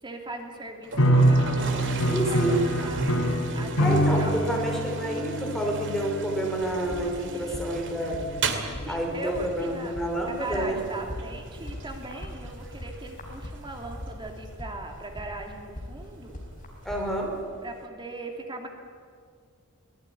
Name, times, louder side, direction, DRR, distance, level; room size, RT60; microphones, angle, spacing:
voice 1, 0.0-3.1 3.5-3.9 4.2-4.5 7.3-7.6 8.8-16.4 17.6-18.7, right 2 dB, 20° right, 3 dB, 2.8 m, -40 dB
Toilet flush, 0.8-17.9, right 4 dB, 60° right, 2.4 m, -40 dB
sound 1, 0.9-9.3, right 1 dB, 85° left, 5.0 m, -26 dB
voice 2, 2.1-2.6 3.8-8.2 8.9-10.8 16.8-17.3, right 1 dB, ahead, 0 dB, 4.6 m, -29 dB
sound 2, 6.5-17.4, left 1 dB, 40° left, 5.0 m, -41 dB
24.0 x 18.0 x 9.8 m, 2.1 s
head